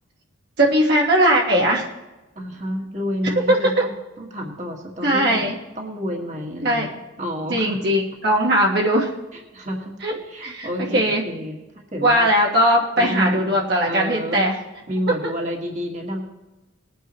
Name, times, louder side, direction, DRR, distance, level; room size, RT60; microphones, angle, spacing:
voice 1, 0.6-1.9 3.5-3.8 5.0-5.6 6.6-6.9 7.5-9.1 10.0-10.1 10.4-11.2 12.0-14.6, equal, 55° right, -2 dB, 1.6 m, -19 dB
voice 2, 2.3-6.9 7.2-7.9 9.3-10.0 10.3-12.3 13.0-14.4 14.9-16.2, equal, 35° right, 0 dB, 1.7 m, -30 dB
20.5 x 9.2 x 3.0 m, 1.1 s
head